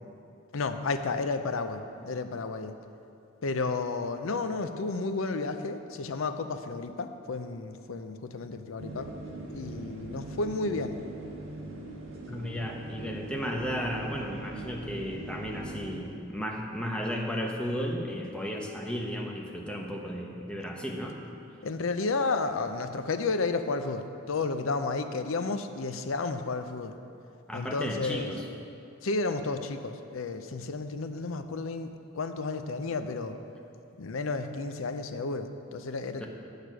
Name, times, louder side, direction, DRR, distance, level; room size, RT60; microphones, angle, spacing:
voice 1, 0.5-2.7 3.4-9.1 9.5-11.0 21.6-26.9 27.5-28.3 29.0-33.4 34.0-36.3, left 3 dB, 75° left, 8 dB, 0.6 m, -32 dB
sound 1, 8.8-16.0, right 2 dB, 70° right, 1.3 m, -41 dB
voice 2, 12.3-21.2 27.5-28.4 36.2-36.3, equal, 5° left, 0 dB, 0.8 m, -34 dB
8.4 x 6.6 x 6.1 m, 2.6 s
head